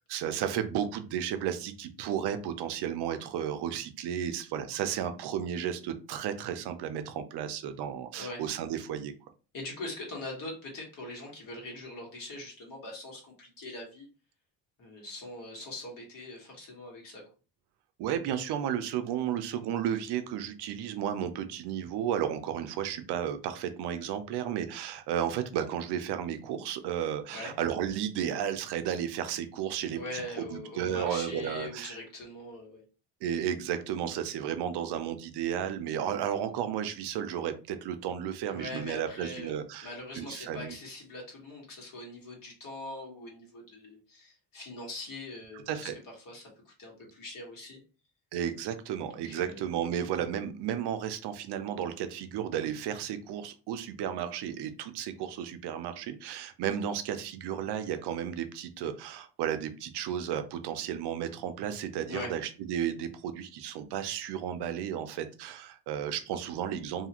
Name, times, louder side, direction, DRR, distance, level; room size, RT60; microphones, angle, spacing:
voice 1, 0.1-9.1 18.0-30.2 30.5-32.0 33.2-40.8 45.5-46.0 48.3-67.1, right 9 dB, 70° right, 9 dB, 0.6 m, -33 dB
voice 2, 9.5-14.1 14.8-17.2 27.3-27.5 29.9-32.8 38.5-39.5 39.8-45.9 46.2-47.8 49.1-49.7 62.1-62.3, left 2 dB, 50° left, -1 dB, 1.5 m, -42 dB
2.7 x 2.4 x 2.8 m, 0.34 s
cardioid pair, 120°, 41 cm